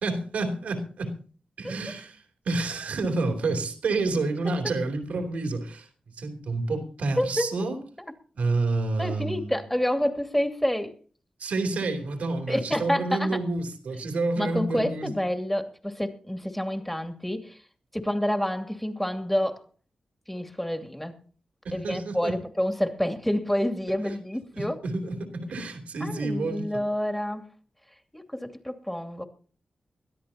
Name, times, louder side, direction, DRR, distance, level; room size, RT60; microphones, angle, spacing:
voice 1, 0.0-1.1 1.6-5.9 6.2-7.8 8.4-9.6 11.4-15.1 21.6-22.3 24.6-26.6, right 3 dB, 80° right, 3.1 m, -29 dB
voice 2, 7.2-7.7 9.0-11.0 12.5-13.4 14.4-17.6 17.9-19.6 20.3-21.2 21.7-24.8 26.0-27.5 28.1-29.2, equal, 5° left, 2.6 m, -28 dB
21.5 x 13.0 x 2.9 m
cardioid pair, 45°, 2 cm